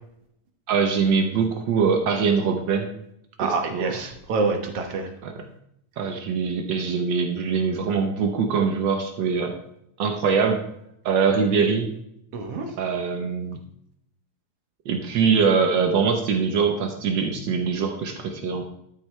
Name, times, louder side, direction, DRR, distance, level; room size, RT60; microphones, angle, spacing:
voice 1, 0.7-2.9 3.4-4.0 5.2-5.4 6.0-9.5 10.0-10.6 11.0-11.9 12.8-13.6 14.8-18.6, right 5 dB, 90° right, 5 dB, 1.0 m, -23 dB
voice 2, 3.4-5.1 12.3-12.7, right 4 dB, 60° right, 5 dB, 1.9 m, -26 dB
12.5 x 7.7 x 3.3 m, 0.75 s
omnidirectional pair, 3.4 m